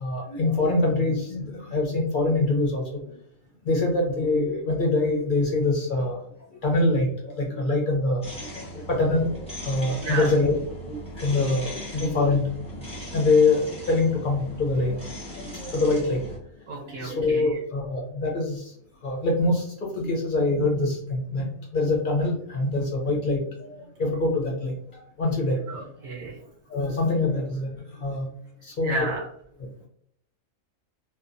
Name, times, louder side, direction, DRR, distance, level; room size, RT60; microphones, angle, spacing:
voice 1, 0.0-2.8 3.7-6.2 6.6-8.2 8.9-10.6 10.9-12.4 13.1-13.6 13.9-15.0 15.5-16.2 16.8-18.7 19.0-19.6 19.9-21.5 21.7-24.7 25.2-25.6 26.7-27.7 28.0-28.3 28.8-29.1, left 2 dB, 60° left, -1 dB, 0.5 m, -24 dB
sound 1, 8.2-16.4, equal, 5° left, 0.7 m, -39 dB
voice 2, 16.7-17.6 25.7-26.4 28.8-29.3, right 3 dB, 65° right, -2 dB, 0.9 m, -32 dB
2.7 x 2.1 x 2.5 m, 0.68 s
omnidirectional pair, 1.4 m